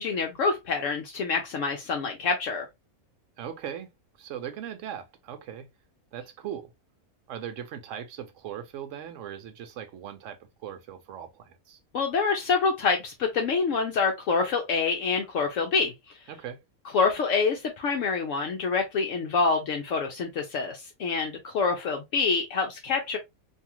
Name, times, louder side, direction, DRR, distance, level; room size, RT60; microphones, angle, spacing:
voice 1, 0.0-2.7 11.9-15.9 16.9-23.2, left 4 dB, 70° left, 0.9 m, -26 dB
voice 2, 3.4-3.9 4.2-5.7 6.1-6.7 7.3-11.8 16.3-16.6, right 9 dB, 65° right, 0.9 m, -39 dB
2.7 x 2.4 x 2.8 m
omnidirectional pair, 1.5 m